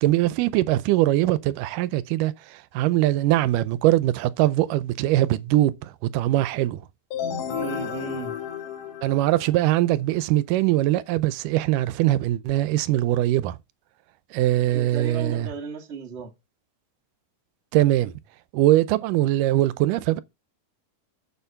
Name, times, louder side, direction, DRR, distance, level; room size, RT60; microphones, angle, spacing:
voice 1, 0.0-6.8 9.0-13.6 14.3-15.5 17.7-18.1 18.5-20.2, right 15 dB, 80° right, 2.2 m, -22 dB
sound 1, 7.1-9.8, left 8 dB, 75° left, 3.1 m, -32 dB
voice 2, 7.5-8.4 14.7-16.3, right 5 dB, 35° right, 1.0 m, -35 dB
7.1 x 6.9 x 5.7 m
omnidirectional pair, 3.8 m